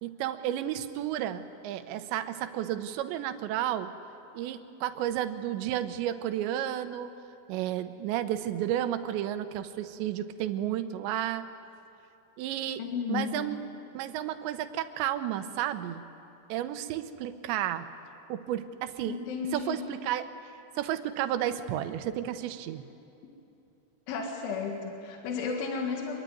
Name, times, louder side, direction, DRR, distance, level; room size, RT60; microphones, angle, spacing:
voice 1, 0.0-3.9 4.3-7.1 7.5-11.5 12.4-12.8 13.1-13.6 13.9-16.1 16.5-17.9 18.3-19.2 19.5-20.3 20.8-22.8, right 11 dB, 75° right, 10 dB, 3.1 m, -32 dB
voice 2, 12.8-13.4 19.1-19.8 24.1-26.2, left 5 dB, 80° left, 1 dB, 4.4 m, -33 dB
25.5 x 23.0 x 9.2 m, 2.8 s
omnidirectional pair, 5.4 m